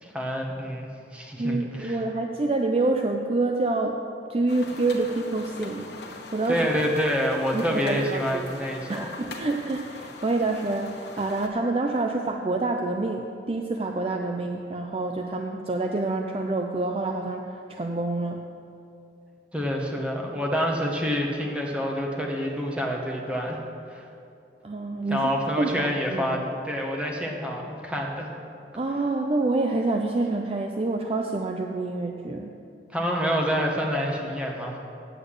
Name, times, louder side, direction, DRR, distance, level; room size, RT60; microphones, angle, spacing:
voice 1, 0.0-2.0 6.5-9.1 19.5-23.6 23.9-24.0 25.1-28.3 32.9-34.8, equal, 5° right, -1 dB, 1.2 m, -27 dB
voice 2, 1.4-4.0 4.3-5.9 6.3-6.6 7.5-8.5 8.9-18.4 24.6-25.3 25.6-26.4 28.7-32.5, right 2 dB, 30° right, 3 dB, 0.4 m, -27 dB
sound 1, 4.5-11.5, left 2 dB, 70° left, 1.2 m, -42 dB
7.9 x 7.9 x 8.1 m, 2.6 s
head